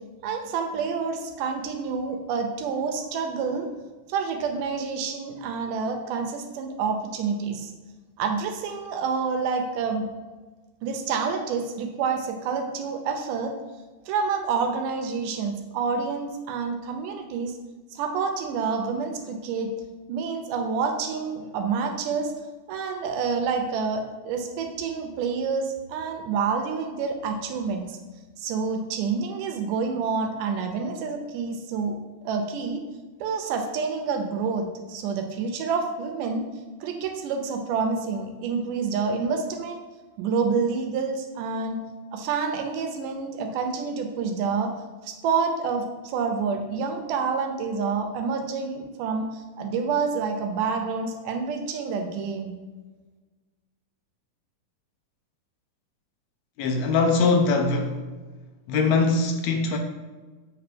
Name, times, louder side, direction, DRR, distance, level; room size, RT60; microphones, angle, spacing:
voice 1, 0.2-3.7 4.1-7.7 8.2-10.1 10.8-13.5 14.1-17.6 17.9-19.7 20.1-22.3 22.7-28.0 28.4-32.0 32.2-32.8 33.2-36.4 36.8-39.8 40.2-41.8 42.1-44.7 45.0-52.6, right 5 dB, 85° right, 4 dB, 2.2 m, -28 dB
voice 2, 56.6-58.0 58.7-59.8, left 4 dB, 75° left, 4 dB, 1.6 m, -22 dB
7.7 x 3.3 x 5.9 m, 1.3 s
omnidirectional pair, 3.6 m